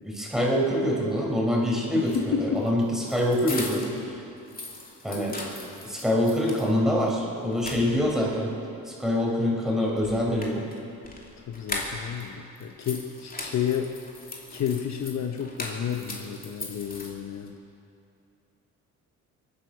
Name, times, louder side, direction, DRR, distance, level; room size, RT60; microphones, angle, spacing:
voice 1, 0.0-4.2 5.0-5.4 5.8-8.5 8.9-10.7, left 1 dB, ahead, -2 dB, 4.7 m, -25 dB
voice 2, 1.9-2.6 11.5-13.9 14.5-17.5, left 8 dB, 55° left, 4 dB, 1.0 m, -31 dB
sound 1, 2.0-4.0 4.4-6.7 7.1-7.2 7.5-8.3 10.0-12.2 12.5-17.5, left 2 dB, 25° left, 2.8 m, -39 dB
22.5 x 10.0 x 6.1 m, 2.6 s
cardioid pair, 80°, 33 cm